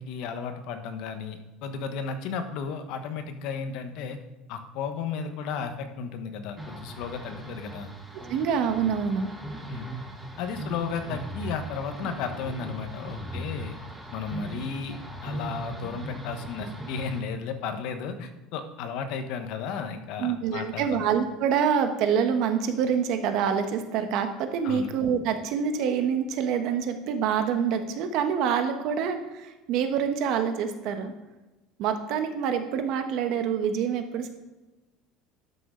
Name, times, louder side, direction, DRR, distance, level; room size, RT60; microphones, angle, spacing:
voice 1, 0.0-4.2 4.5-7.9 9.7-9.9 10.4-13.7 14.1-21.0 24.6-24.9, left 6 dB, 60° left, 7 dB, 1.2 m, -34 dB
sound 1, 6.6-17.2, right 1 dB, 5° right, 1.1 m, -39 dB
voice 2, 8.3-9.3 20.2-31.1 31.8-34.3, right 7 dB, 55° right, 7 dB, 1.1 m, -26 dB
12.5 x 6.4 x 3.8 m, 1.1 s
cardioid pair, 150°, 0 cm